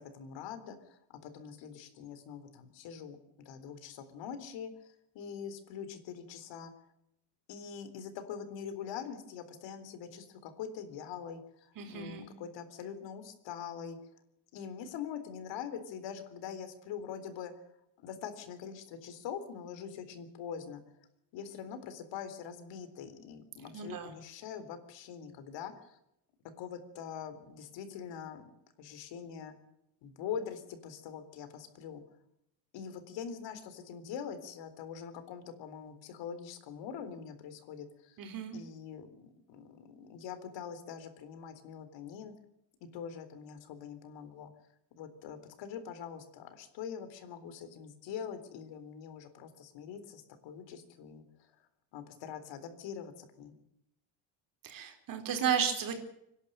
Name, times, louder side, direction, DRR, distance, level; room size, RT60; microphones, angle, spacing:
voice 1, 0.0-6.7 7.5-14.0 14.5-17.5 18.0-20.8 21.3-26.0 26.6-28.5 28.8-29.5 30.0-32.0 32.7-38.2 38.5-42.3 42.8-44.5 45.0-51.2 51.9-53.5, left 7 dB, 70° left, 10 dB, 3.8 m, -43 dB
voice 2, 11.8-12.2 23.7-24.1 38.2-38.6 54.6-55.9, right 8 dB, 45° right, 6 dB, 4.3 m, -33 dB
25.5 x 11.5 x 9.0 m, 0.79 s
cardioid pair, 170°, 45 cm